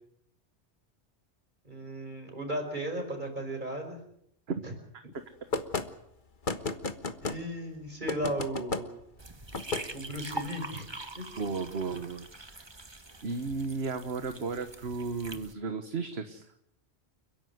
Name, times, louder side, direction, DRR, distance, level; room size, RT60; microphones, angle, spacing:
voice 1, 1.7-4.0 4.6-4.7 7.2-8.9 9.9-10.9 11.1-11.2, right 1 dB, 45° right, 5 dB, 5.3 m, -35 dB
sound 1, 5.5-5.9 6.4-7.4 8.1-8.8 9.5-9.8, left 3 dB, 50° left, 1.6 m, -32 dB
sound 2, 9.2-15.5, right 2 dB, 25° right, 1.4 m, -44 dB
voice 2, 11.4-12.7 13.2-16.5, right 4 dB, 65° right, 8 dB, 1.6 m, -34 dB
30.0 x 11.5 x 9.6 m, 0.75 s
omnidirectional pair, 1.1 m